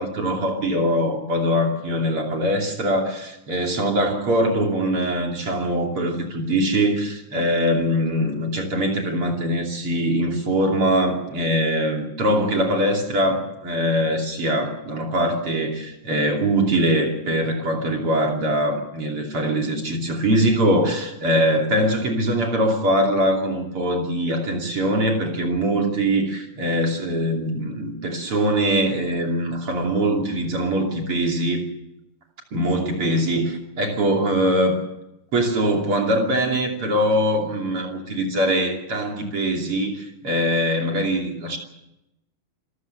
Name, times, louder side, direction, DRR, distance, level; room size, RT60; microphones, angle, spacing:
voice 1, 0.0-31.7 32.5-34.8 35.3-41.6, equal, 45° right, 2 dB, 3.6 m, -22 dB
26.5 x 14.5 x 8.1 m, 0.88 s
omnidirectional pair, 3.6 m